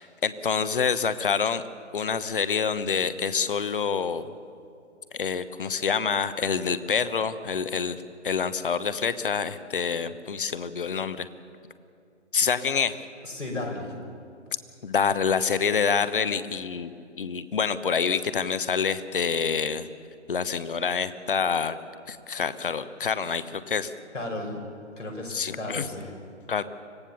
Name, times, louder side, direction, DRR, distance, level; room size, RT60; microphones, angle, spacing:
voice 1, 0.0-1.6 1.9-4.3 5.1-11.3 12.3-13.0 14.8-16.9 17.2-19.9 20.3-21.8 22.1-23.9 25.3-25.9 26.5-26.6, left 6 dB, 45° left, 13 dB, 1.0 m, -27 dB
voice 2, 13.2-14.0 24.1-24.6 25.0-26.1, left 2 dB, 85° left, 0 dB, 5.7 m, -34 dB
25.5 x 17.0 x 7.0 m, 2.5 s
figure-of-eight pair, 140°, 36 cm